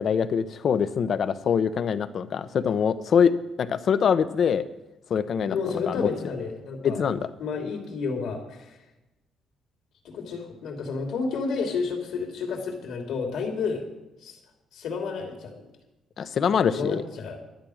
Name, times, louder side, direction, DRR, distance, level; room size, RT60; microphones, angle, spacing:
voice 1, 0.0-3.3 3.6-4.7 5.1-5.9 6.8-7.3 16.2-17.0, left 7 dB, 60° left, 13 dB, 0.8 m, -24 dB
voice 2, 5.5-7.0 7.4-8.8 10.0-13.8 14.2-14.4 14.7-15.6 16.7-17.4, left 5 dB, 80° left, 2 dB, 3.0 m, -31 dB
12.0 x 10.0 x 6.4 m, 0.97 s
cardioid pair, 90°, 0 cm